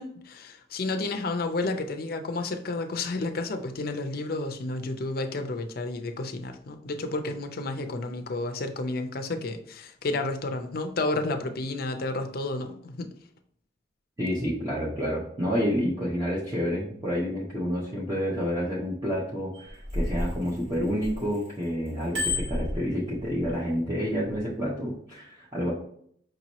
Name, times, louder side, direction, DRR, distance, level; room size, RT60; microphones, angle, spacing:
voice 1, 0.0-13.1, left 2 dB, 50° left, 6 dB, 0.5 m, -31 dB
voice 2, 14.2-25.7, equal, 20° right, -7 dB, 0.8 m, -29 dB
Bicycle bell, 19.5-21.5 21.9-23.5 24.1-24.4, left 2 dB, 75° right, 1.6 m, -31 dB
5.2 x 2.9 x 2.9 m, 0.65 s
head